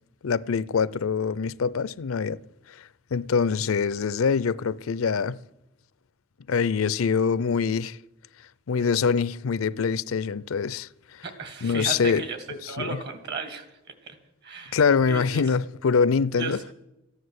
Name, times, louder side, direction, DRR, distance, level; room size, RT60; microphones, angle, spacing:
voice 1, 0.2-2.4 3.1-5.4 6.5-8.0 8.7-10.9 11.6-12.2 12.6-13.0 14.7-16.6, left 5 dB, 85° left, 0.5 m, -24 dB
voice 2, 11.2-13.6 14.0-14.2 14.4-14.8 15.1-15.4 16.4-16.6, right 4 dB, 55° right, 2.3 m, -35 dB
14.5 x 9.8 x 8.0 m
head